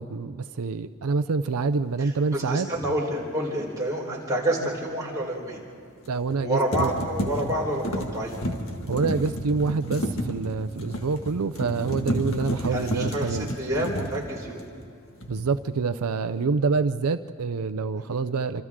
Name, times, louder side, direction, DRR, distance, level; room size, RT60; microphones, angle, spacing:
voice 1, 0.0-2.7 6.1-6.9 8.9-13.6 15.3-18.6, right 4 dB, 85° right, 10 dB, 0.6 m, -26 dB
voice 2, 2.0-5.6 6.4-8.4 12.7-14.6 18.0-18.1, right 1 dB, 15° right, -4 dB, 4.1 m, -28 dB
sound 1, 2.7-2.9 6.0-6.4 6.7-14.9 15.2-15.7, equal, 65° left, 1.9 m, -31 dB
27.0 x 26.5 x 3.7 m, 2.3 s
head